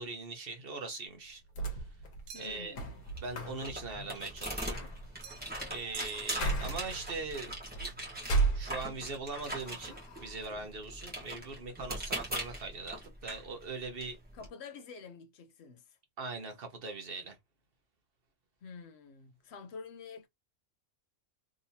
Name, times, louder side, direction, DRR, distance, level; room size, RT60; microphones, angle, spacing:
voice 1, 0.0-1.4 2.4-2.8 3.2-4.9 5.7-7.9 8.5-14.2 16.2-17.4, right 3 dB, 45° right, 1.1 m, -41 dB
sound 1, 1.3-9.2 9.6-10.4, right 3 dB, 80° left, 1.5 m, -36 dB
voice 2, 2.3-3.0 14.3-16.0 18.6-20.3, left 5 dB, 60° left, 0.7 m, -48 dB
sound 2, 2.3-2.8 5.2-5.6 5.9-6.9, right 8 dB, 75° right, 1.0 m, -49 dB
sound 3, 2.8-14.5, right 1 dB, 5° right, 1.0 m, -42 dB
3.7 x 2.8 x 2.7 m
omnidirectional pair, 1.5 m